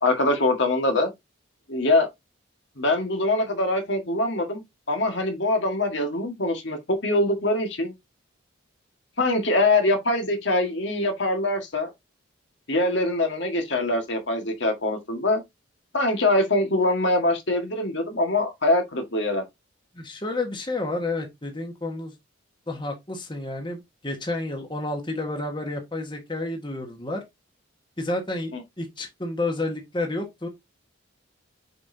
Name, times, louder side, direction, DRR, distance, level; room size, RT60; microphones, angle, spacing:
voice 1, 0.0-1.1 1.7-2.1 2.8-7.9 9.2-11.9 12.7-15.4 15.9-19.4 28.5-28.6, left 2 dB, 65° left, 1.8 m, -23 dB
voice 2, 19.9-22.1 22.7-27.2 28.0-30.5, left 2 dB, 25° left, 1.4 m, -30 dB
6.9 x 5.4 x 2.8 m
head